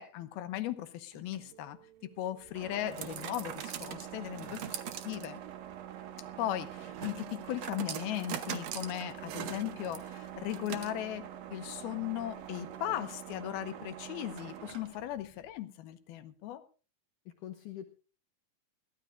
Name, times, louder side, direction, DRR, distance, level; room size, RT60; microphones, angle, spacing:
voice 1, 0.0-1.8 2.2-4.8 5.0-5.4 6.4-16.6, left 13 dB, 85° left, 10 dB, 2.8 m, -37 dB
sound 1, 1.1-15.1, right 10 dB, 70° right, 1.6 m, -43 dB
sound 2, 2.4-15.5, right 4 dB, 90° right, 8.2 m, -63 dB
voice 2, 17.3-17.8, left 11 dB, 70° left, 6 dB, 2.4 m, -45 dB
22.0 x 15.5 x 2.6 m, 0.36 s
omnidirectional pair, 4.3 m